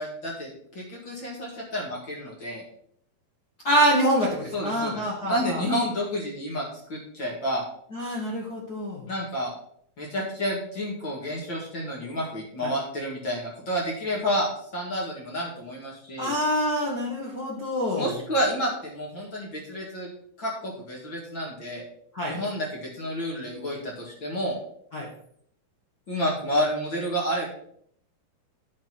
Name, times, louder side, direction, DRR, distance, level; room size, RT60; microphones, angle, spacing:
voice 1, 0.0-2.6 4.5-6.6 6.9-7.6 9.1-9.5 10.0-16.3 18.0-20.1 20.4-21.8 22.3-24.6 26.1-27.5, equal, 40° left, -3 dB, 2.2 m, -30 dB
voice 2, 3.6-5.6 7.9-9.0 12.6-12.7 16.2-18.1 22.1-22.4 24.9-25.1, equal, 80° left, -3 dB, 0.8 m, -25 dB
9.5 x 4.6 x 5.8 m, 0.65 s
omnidirectional pair, 4.3 m